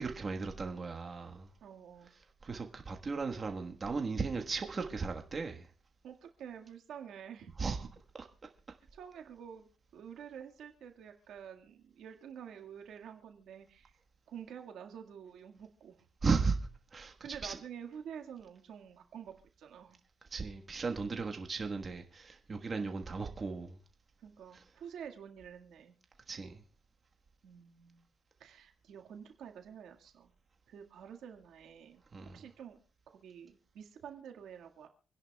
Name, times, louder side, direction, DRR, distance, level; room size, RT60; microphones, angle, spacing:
voice 1, 0.0-1.5 2.4-5.7 7.6-7.9 16.2-16.6 16.9-17.2 17.4-17.6 20.3-23.8 24.5-24.6 26.3-26.6 32.1-32.4, right 4 dB, 35° right, 1.4 m, -36 dB
voice 2, 1.6-2.1 6.0-7.5 8.9-14.0 14.3-16.1 17.2-20.0 24.2-25.9 27.4-28.1 28.4-30.3 30.7-32.0 32.3-32.8 33.1-34.9, right 8 dB, 75° right, 1.8 m, -49 dB
27.5 x 10.5 x 2.3 m
cardioid pair, 90°, 0 cm